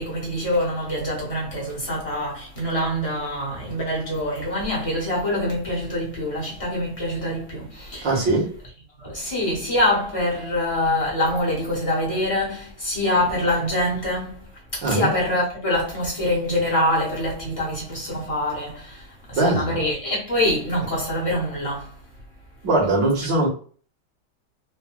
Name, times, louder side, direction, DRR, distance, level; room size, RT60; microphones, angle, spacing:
voice 1, 0.0-8.1 9.0-21.9, left 1 dB, 25° left, 0.7 m, -25 dB
voice 2, 8.0-8.5 14.8-15.1 19.4-19.8 22.6-23.5, right 2 dB, 60° right, 1.8 m, -21 dB
3.9 x 2.2 x 2.2 m
omnidirectional pair, 2.2 m